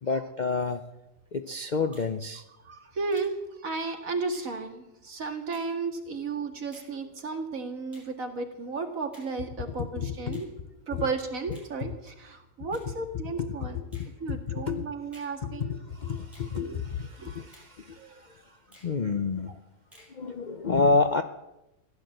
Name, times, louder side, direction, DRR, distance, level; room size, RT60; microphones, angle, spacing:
voice 1, 0.0-0.8 1.3-2.4 9.8-10.4 10.9-11.1 12.9-13.0 13.4-14.9 15.4-18.3 18.8-19.5 20.1-21.2, left 4 dB, 90° left, 8 dB, 0.4 m, -29 dB
Finger snapping, 1.9-2.1 3.1-3.3 4.3-4.5 5.5-5.7 6.7-6.9 7.9-8.1 9.1-9.3 10.3-10.5 11.5-11.7 12.7-12.9 13.9-14.1 15.1-15.4 16.3-16.5 17.5-17.7 18.7-18.9 19.9-20.2, equal, ahead, 5.9 m, -55 dB
voice 2, 2.6-10.5 10.9-13.8 14.2-15.8 16.5-16.8 17.2-17.3 17.9-18.2, right 4 dB, 55° right, 4 dB, 2.3 m, -34 dB
16.0 x 11.5 x 7.8 m, 0.93 s
omnidirectional pair, 1.8 m